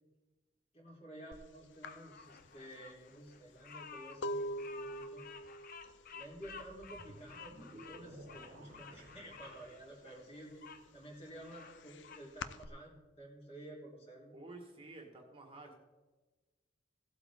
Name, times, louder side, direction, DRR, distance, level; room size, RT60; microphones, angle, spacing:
voice 1, 0.7-5.2 6.1-10.7 10.9-14.4, right 1 dB, 35° left, -3 dB, 3.7 m, -52 dB
sound 1, 1.3-1.5 1.8-7.5 7.8-8.3 8.6-9.7 10.1-12.7, equal, 80° left, 0.6 m, -44 dB
Bird vocalization bird call bird song, 1.8-10.8 11.3-12.3, left 6 dB, 50° left, 0.8 m, -53 dB
sound 2, 6.4-10.4, right 1 dB, 65° right, 1.5 m, -57 dB
voice 2, 14.3-15.7, right 2 dB, 30° right, 1 dB, 1.6 m, -51 dB
17.0 x 8.2 x 3.7 m, 1.3 s
head